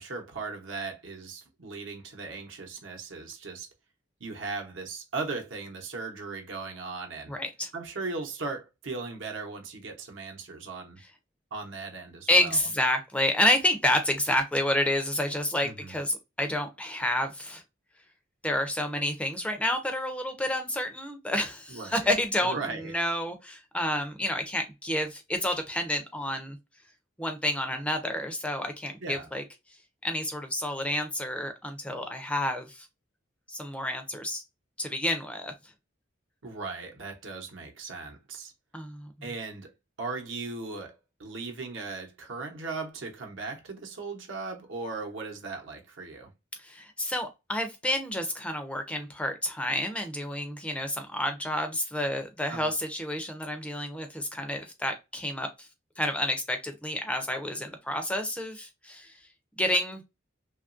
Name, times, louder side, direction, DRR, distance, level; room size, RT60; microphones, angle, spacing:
voice 1, 0.0-3.7 4.2-7.3 7.7-11.0 11.5-12.6 15.6-16.0 21.7-22.1 22.4-22.9 29.0-29.3 36.4-38.5 39.2-39.7 40.0-46.3 52.5-52.7, right 3 dB, 75° right, 0.8 m, -38 dB
voice 2, 7.3-7.7 12.3-17.6 18.4-22.6 22.9-26.6 27.2-29.4 30.0-32.9 33.5-34.4 34.8-35.5 38.7-39.1 46.6-55.7 56.0-59.2 59.6-60.0, left 1 dB, 5° left, 0.4 m, -29 dB
2.9 x 2.3 x 2.5 m
head